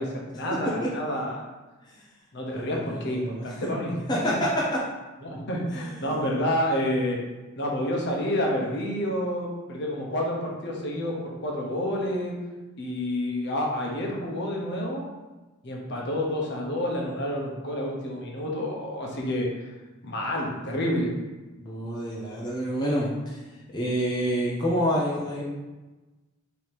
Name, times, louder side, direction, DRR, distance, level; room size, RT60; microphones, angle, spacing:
voice 1, 0.0-1.4 2.3-4.0 4.3-4.4 5.2-7.2 7.6-12.4 12.8-15.1 15.6-19.5 20.0-21.1, left 1 dB, 55° left, -1 dB, 0.9 m, -29 dB
voice 2, 2.5-3.7 4.1-4.8 5.7-6.2 21.6-23.4 23.7-25.4, equal, 20° left, -5 dB, 0.6 m, -28 dB
3.4 x 2.9 x 4.5 m, 1.2 s
head